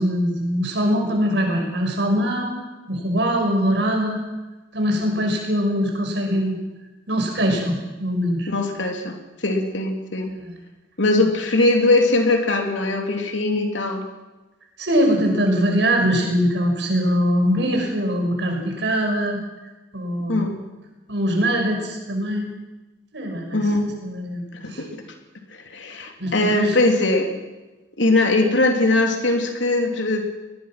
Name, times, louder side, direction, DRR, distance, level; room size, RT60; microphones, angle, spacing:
voice 1, 0.0-2.5 2.9-4.2 4.7-6.6 7.1-8.5 10.4-10.5 14.8-19.4 19.9-20.4 21.1-22.5 23.1-23.6 24.0-24.4 24.7-24.8 26.2-26.7, equal, 70° right, 2 dB, 6.0 m, -22 dB
voice 2, 8.5-9.2 9.4-10.3 11.0-14.0 20.3-20.6 23.5-23.9 24.6-24.9 25.5-27.4 28.0-30.2, left 2 dB, 85° left, 3 dB, 3.4 m, -20 dB
21.0 x 20.5 x 6.0 m, 1.1 s
head